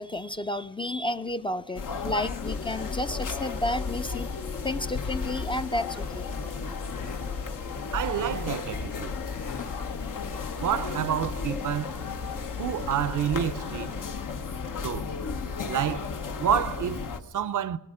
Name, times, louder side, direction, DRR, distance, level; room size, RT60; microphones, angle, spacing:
voice 1, 0.0-4.3 4.6-6.3, left 1 dB, 15° left, 0.4 m, -31 dB
sound 1, 1.7-17.2, left 5 dB, 75° left, 1.0 m, -34 dB
sound 2, 2.4-14.2, left 5 dB, 45° left, 1.0 m, -44 dB
sound 3, 5.9-6.3 6.9-7.5 8.1-8.5 8.9-9.8 10.2-10.7 11.0-11.2, left 3 dB, 60° left, 2.7 m, -47 dB
voice 2, 7.9-9.2 10.6-11.9 12.6-14.1 14.8-15.1 15.7-16.1 16.4-17.8, right 9 dB, 70° right, 0.6 m, -29 dB
18.0 x 12.0 x 4.8 m
cardioid pair, 90°, 32 cm